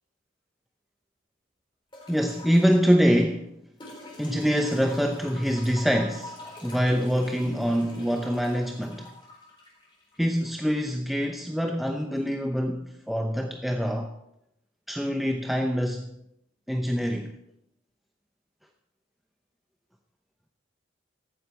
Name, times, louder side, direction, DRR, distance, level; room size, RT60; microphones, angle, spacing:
sound 1, 1.9-2.8 3.8-10.8 12.2-12.3, left 1 dB, 25° left, 4.1 m, -45 dB
voice 1, 2.1-3.5 4.2-6.4 6.6-9.1 10.2-14.1 14.9-16.0 16.7-17.3, equal, ahead, 0.7 m, -25 dB
15.0 x 12.5 x 4.3 m
head